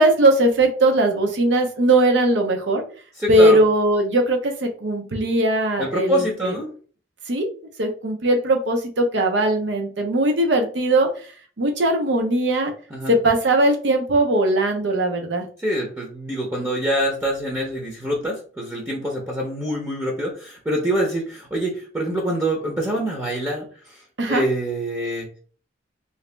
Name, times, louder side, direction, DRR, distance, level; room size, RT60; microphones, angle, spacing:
voice 1, 0.0-2.8 3.3-6.6 7.3-7.5 7.8-11.1 11.6-12.7 13.1-15.5 24.2-24.4, right 1 dB, 75° right, 3 dB, 0.8 m, -19 dB
voice 2, 3.2-3.6 5.8-6.7 12.9-13.1 15.6-24.0 24.3-25.3, equal, 15° right, -2 dB, 0.7 m, -25 dB
2.9 x 2.8 x 3.3 m, 0.42 s
head